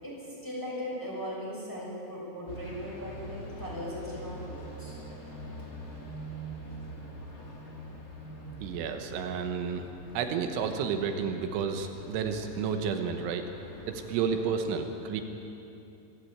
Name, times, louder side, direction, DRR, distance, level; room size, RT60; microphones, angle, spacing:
voice 1, 0.0-5.0, equal, 5° left, -6 dB, 5.8 m, -38 dB
sound 1, 2.5-14.5, right 1 dB, 25° left, 2.1 m, -44 dB
voice 2, 8.6-9.9 10.2-13.4 13.9-15.2, right 6 dB, 85° right, 6 dB, 3.6 m, -31 dB
24.5 x 14.0 x 8.8 m, 2.8 s
omnidirectional pair, 5.3 m